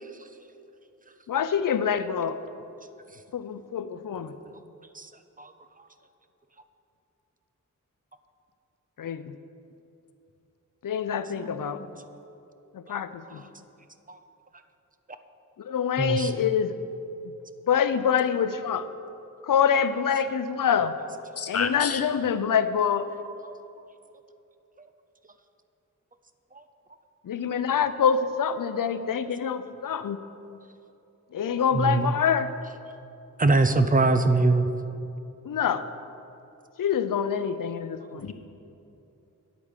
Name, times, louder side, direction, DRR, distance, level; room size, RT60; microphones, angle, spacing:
voice 1, 1.3-2.4 3.3-4.3 9.0-9.3 10.8-11.8 12.7-13.4 15.7-16.7 17.7-18.8 19.4-20.9 21.5-23.1 27.3-30.2 31.3-32.5 35.4-35.8 36.8-38.3, left 7 dB, 90° left, 12 dB, 0.6 m, -25 dB
voice 2, 16.0-16.3 31.7-32.2 33.4-34.7, right 3 dB, 25° right, 9 dB, 0.5 m, -21 dB
voice 3, 21.4-22.0 38.2-38.3, left 6 dB, 50° left, 8 dB, 0.7 m, -29 dB
9.3 x 8.6 x 6.6 m, 2.8 s
wide cardioid pair, 125°, 32 cm